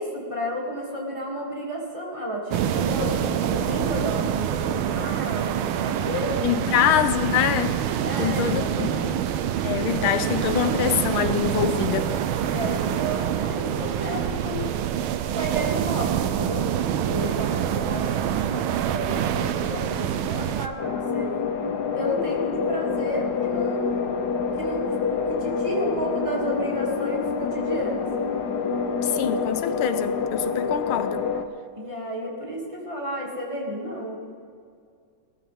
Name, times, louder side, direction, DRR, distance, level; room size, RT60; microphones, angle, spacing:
voice 1, 0.0-6.8 8.0-9.5 12.4-14.7 15.3-21.3 21.9-24.9 25.3-28.1 31.8-34.2, equal, 15° right, -4 dB, 2.6 m, -32 dB
sound 1, 2.5-20.7, right 10 dB, 85° right, 1.5 m, -26 dB
voice 2, 6.4-7.8 8.2-8.9 9.6-12.1 29.0-31.2, left 10 dB, 85° left, 11 dB, 1.6 m, -24 dB
sound 2, 20.8-31.4, left 5 dB, 60° left, 1.3 m, -27 dB
19.5 x 14.0 x 3.6 m, 2.2 s
omnidirectional pair, 2.2 m